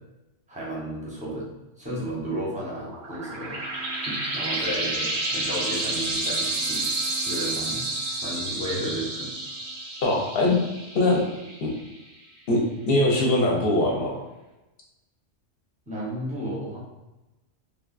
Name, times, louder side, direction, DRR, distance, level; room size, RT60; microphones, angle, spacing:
voice 1, 0.5-1.5 1.8-3.6 4.1-6.9 7.2-7.8 8.2-9.3 15.9-16.8, right 1 dB, 10° right, -6 dB, 0.6 m, -33 dB
sound 1, 2.7-11.9, right 2 dB, 55° right, 0.5 m, -30 dB
voice 2, 10.0-10.5 10.9-11.2 11.6-11.7 12.5-12.6 12.9-14.2, left 1 dB, 55° left, -2 dB, 0.8 m, -21 dB
3.2 x 2.3 x 2.4 m, 1.0 s
omnidirectional pair, 1.3 m